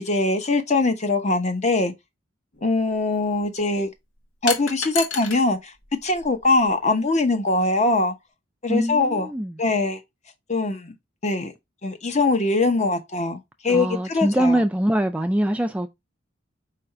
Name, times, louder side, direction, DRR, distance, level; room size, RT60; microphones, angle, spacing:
voice 1, 0.1-1.9 2.6-3.9 4.4-5.7 6.0-8.1 8.6-9.3 9.6-10.0 10.5-10.9 11.2-11.5 11.8-14.6, left 2 dB, 40° left, 0.8 m, -22 dB
sound 1, 2.5-2.7 4.5-5.4 5.8-6.6, left 6 dB, 90° left, 1.1 m, -30 dB
voice 2, 8.7-9.6 13.7-15.9, right 1 dB, 5° right, 0.3 m, -23 dB
4.8 x 2.5 x 4.4 m
head